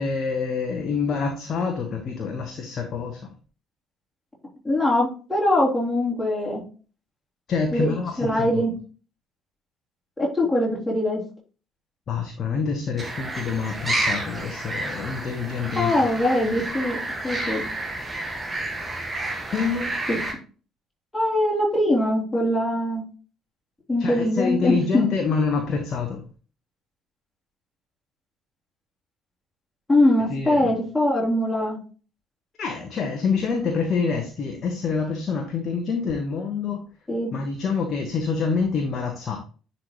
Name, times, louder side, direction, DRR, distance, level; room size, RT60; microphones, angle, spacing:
voice 1, 0.0-3.3 7.5-8.7 12.1-15.9 19.5-20.0 24.0-26.2 30.3-30.7 32.6-36.8 37.3-39.4, left 5 dB, 40° left, 3 dB, 1.1 m, -26 dB
voice 2, 4.6-6.6 7.7-8.7 10.2-11.2 15.7-17.0 17.2-17.6 20.1-20.2 21.1-23.0 23.9-25.0 29.9-31.8 37.1-37.3, left 1 dB, 10° left, -4 dB, 3.4 m, -22 dB
sound 1, 13.0-20.3, right 2 dB, 20° right, 1.6 m, -30 dB
10.0 x 4.2 x 3.0 m, 0.38 s
figure-of-eight pair, 50°, 0 cm